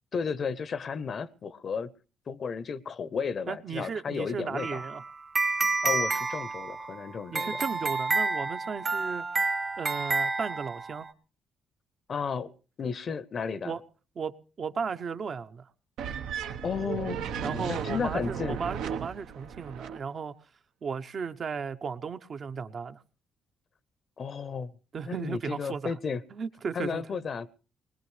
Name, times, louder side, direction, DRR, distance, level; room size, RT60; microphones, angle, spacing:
voice 1, 0.1-1.9 2.3-4.8 5.8-7.6 12.1-12.5 12.8-13.7 16.6-18.6 24.2-24.7 25.0-26.2 26.7-27.5, left 6 dB, 50° left, 0.7 m, -33 dB
voice 2, 3.5-5.0 7.3-9.2 9.8-11.1 13.6-13.8 14.2-15.7 17.4-20.3 20.8-23.0 24.9-25.9 26.3-27.1, right 6 dB, 50° right, 0.7 m, -35 dB
sound 1, 4.6-11.1, right 3 dB, 35° right, 1.0 m, -29 dB
sound 2, 16.0-20.0, right 7 dB, 90° right, 0.9 m, -35 dB
20.5 x 20.0 x 3.2 m
cardioid pair, 90°, 0 cm